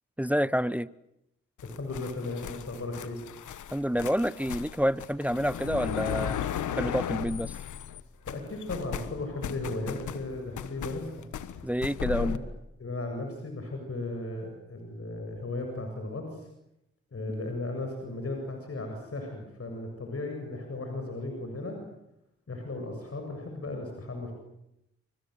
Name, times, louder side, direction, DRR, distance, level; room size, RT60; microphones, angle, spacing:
voice 1, 0.2-0.9 3.7-6.5 6.8-7.5 11.6-12.4, equal, 5° right, 1.0 m, -28 dB
sound 1, 1.6-8.0 8.3-12.4, left 9 dB, 85° left, 1.5 m, -36 dB
voice 2, 1.8-3.2 8.3-11.1 12.0-12.4 12.8-16.5 17.1-21.8 22.5-24.3, left 2 dB, 50° left, 7.8 m, -36 dB
28.5 x 25.5 x 8.2 m
supercardioid pair, 40°, 29 cm